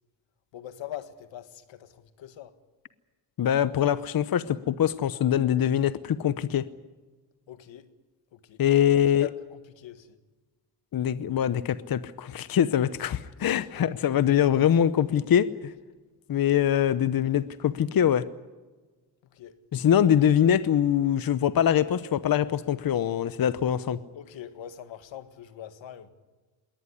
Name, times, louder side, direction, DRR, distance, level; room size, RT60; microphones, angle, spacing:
voice 1, 0.5-2.5 7.5-7.9 8.3-8.8 9.2-10.2 13.4-13.8 19.2-19.6 24.1-26.1, left 11 dB, 90° left, 1.8 m, -43 dB
voice 2, 3.4-6.7 8.6-9.3 10.9-15.7 16.3-18.2 19.7-24.0, left 9 dB, 50° left, 0.9 m, -23 dB
21.5 x 18.5 x 9.7 m
cardioid pair, 105°, 44 cm